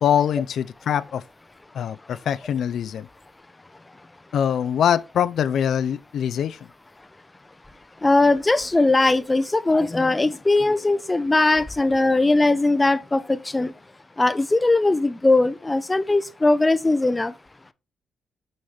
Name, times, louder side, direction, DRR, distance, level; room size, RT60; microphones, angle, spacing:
voice 1, 0.0-1.2 1.7-3.1 4.3-6.6, left 9 dB, 70° left, 0.4 m, -23 dB
voice 2, 8.0-13.7 14.2-17.3, left 2 dB, 15° left, 0.6 m, -20 dB
6.3 x 5.7 x 3.2 m
cardioid pair, 95°, 0 cm